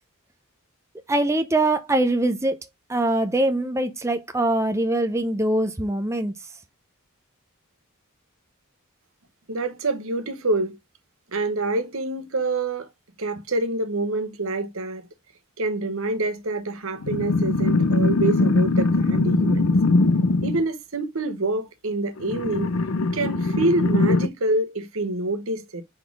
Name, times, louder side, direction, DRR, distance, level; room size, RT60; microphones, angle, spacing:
voice 1, 1.1-2.6 2.9-6.5, right 1 dB, 15° right, 0.7 m, -23 dB
voice 2, 9.5-10.8 11.3-12.9 13.2-15.0 15.6-19.6 20.4-22.7 23.1-25.8, right 2 dB, 65° right, 1.1 m, -26 dB
sound 1, 17.0-20.6 22.2-24.3, left 2 dB, 65° left, 0.7 m, -21 dB
5.5 x 4.1 x 4.7 m
head